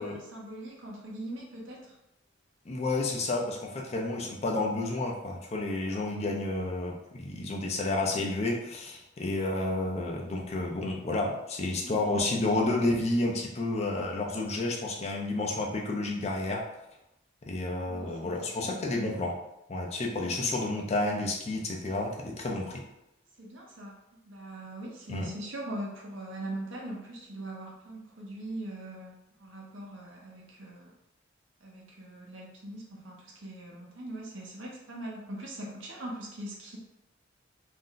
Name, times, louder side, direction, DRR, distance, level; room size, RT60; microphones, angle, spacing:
voice 1, 0.0-1.9 5.9-6.0 11.8-12.7 13.0-13.2 17.9-18.7 20.1-20.3 23.4-24.0 24.3-30.9 31.6-36.8, right 1 dB, 80° right, -2 dB, 0.8 m, -41 dB
voice 2, 2.7-16.6 17.5-19.3 19.7-22.8 25.1-25.3, left 2 dB, 35° left, 0 dB, 0.5 m, -30 dB
2.5 x 2.1 x 3.8 m, 0.87 s
head